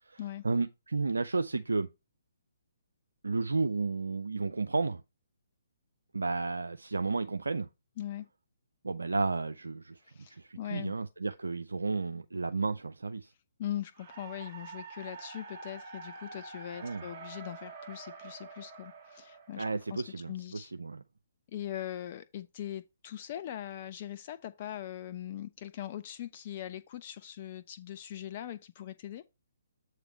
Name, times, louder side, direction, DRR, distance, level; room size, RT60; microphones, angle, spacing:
voice 1, 0.1-1.9 3.2-5.0 6.1-7.7 8.8-10.0 10.3-13.3 16.8-17.0 19.6-21.0, right 3 dB, 70° right, 0.4 m, -32 dB
voice 2, 10.0-10.9 13.6-19.6 19.9-20.7 21.5-29.2, left 11 dB, 35° left, 0.4 m, -41 dB
sound 1, 13.9-20.1, right 4 dB, 15° right, 1.8 m, -47 dB
7.8 x 3.2 x 5.9 m
figure-of-eight pair, 130°, 0 cm